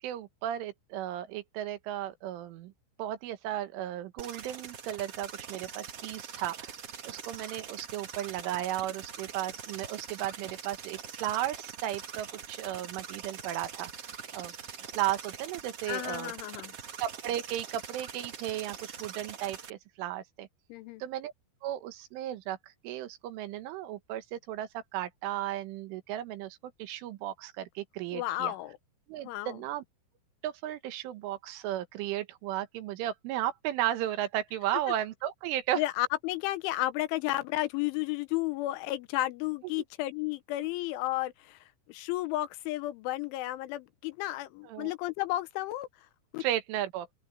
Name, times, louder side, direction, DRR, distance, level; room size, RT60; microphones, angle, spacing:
voice 1, 0.0-2.7 3.0-6.8 7.1-14.1 14.3-14.5 14.9-16.3 17.0-20.5 21.0-21.3 21.6-28.5 29.1-29.8 30.4-35.8 44.7-44.9 46.4-47.1, right 12 dB, 85° right, 3.9 m, -35 dB
sound 1, 4.2-19.7, right 7 dB, 65° right, 1.5 m, -43 dB
voice 2, 15.9-16.7 20.7-21.0 28.1-28.8 29.3-29.6 35.8-41.6 41.9-45.9 46.3-46.4, left 16 dB, 85° left, 3.3 m, -32 dB
open air
omnidirectional pair, 5.5 m